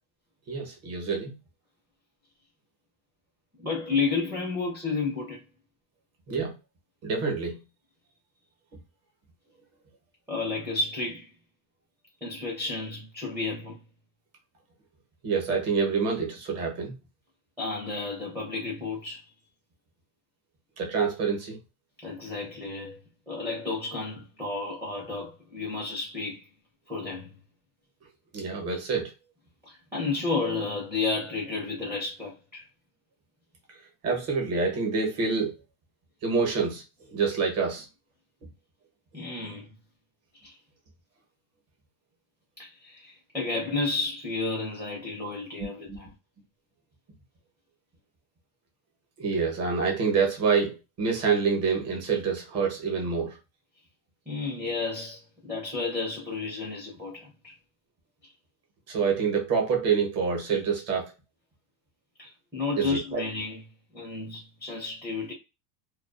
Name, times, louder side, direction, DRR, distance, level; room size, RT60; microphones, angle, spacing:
voice 1, 0.5-1.3 6.3-6.5 7.0-7.6 15.2-16.9 20.8-21.6 28.3-29.1 34.0-35.5 36.2-36.8 37.1-37.9 45.9-46.0 49.2-53.4 58.9-61.1 62.8-63.2, right 5 dB, 35° right, 0.9 m, -27 dB
voice 2, 3.6-5.4 10.3-11.3 12.2-13.8 17.6-19.2 22.0-23.0 23.3-26.5 26.9-27.3 29.7-32.6 39.1-39.7 40.4-40.5 42.6-46.1 54.3-57.5 62.2-63.6 63.9-65.3, left 3 dB, 5° right, 0.5 m, -32 dB
2.3 x 2.3 x 2.3 m
cardioid pair, 150°, 44 cm